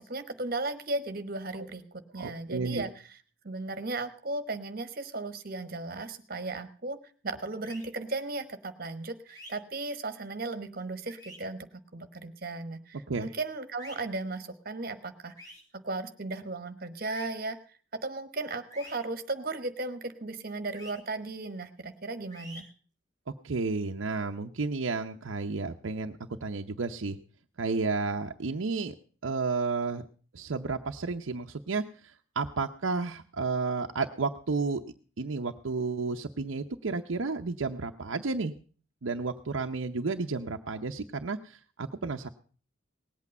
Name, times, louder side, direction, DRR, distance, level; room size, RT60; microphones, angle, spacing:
voice 1, 0.0-3.2 3.4-7.0 7.2-22.7, right 2 dB, 45° right, 10 dB, 1.2 m, -36 dB
voice 2, 2.2-2.8 13.1-13.3 23.4-27.2 27.6-28.9 29.2-30.0 30.3-34.8 35.2-38.5 39.0-42.3, right 4 dB, 80° right, 4 dB, 0.7 m, -32 dB
sound 1, 7.6-7.8 9.3-9.5 11.1-11.4 13.8-14.0 15.4-15.6 17.1-17.3 18.7-19.0 20.7-20.9 22.3-22.6, equal, 20° left, 4.0 m, -47 dB
18.5 x 8.4 x 5.3 m, 0.40 s
head